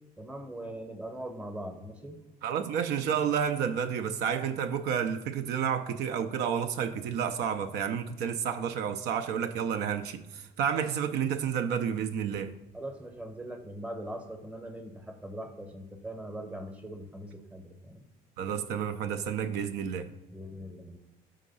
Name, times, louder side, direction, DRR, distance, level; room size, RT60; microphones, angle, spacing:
voice 1, 0.2-2.2 12.7-18.0 20.3-21.0, right 1 dB, 5° right, 0.8 m, -41 dB
voice 2, 2.4-12.5 18.4-20.1, right 8 dB, 80° right, 0.5 m, -30 dB
5.2 x 3.8 x 5.4 m
cardioid pair, 110°, 17 cm